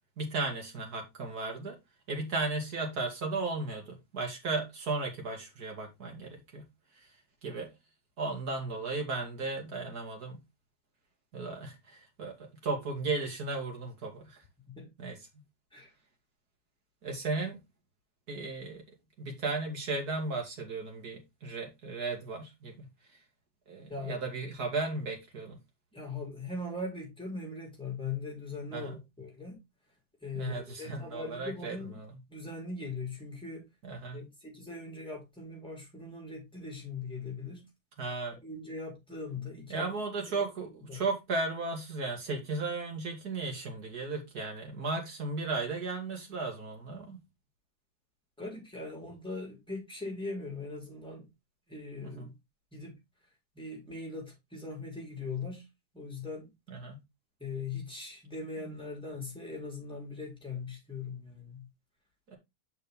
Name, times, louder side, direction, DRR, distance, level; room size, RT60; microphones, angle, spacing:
voice 1, 0.2-1.8 2.1-6.7 7.4-7.7 8.2-10.4 11.3-14.4 15.0-15.2 17.0-17.6 18.3-18.8 19.2-22.9 23.7-25.6 28.7-29.0 30.3-32.2 33.8-34.3 38.0-38.4 39.7-47.2 52.0-52.3 56.7-57.0 58.6-58.8 62.3-62.4, right 3 dB, 80° right, 2.6 m, -35 dB
voice 2, 23.9-24.2 25.9-29.5 30.2-32.0 32.3-33.6 34.1-37.7 38.4-39.9 40.2-40.4 40.9-41.0 48.4-51.3 51.7-52.3 52.7-52.9 53.6-55.7 55.9-56.5 57.4-61.7, left 3 dB, 5° left, 3.9 m, -40 dB
6.6 x 6.4 x 3.5 m
omnidirectional pair, 1.6 m